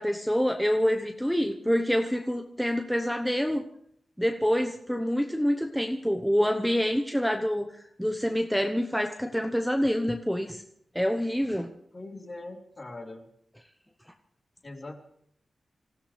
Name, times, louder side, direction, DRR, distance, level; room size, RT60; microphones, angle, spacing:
voice 1, 0.0-3.6 4.2-7.7 8.0-10.6 10.9-11.7, equal, ahead, 4 dB, 1.0 m, -26 dB
voice 2, 11.9-13.3 14.6-15.0, left 2 dB, 40° left, 1 dB, 3.1 m, -41 dB
26.0 x 15.0 x 3.3 m, 0.70 s
cardioid pair, 70°, 0 cm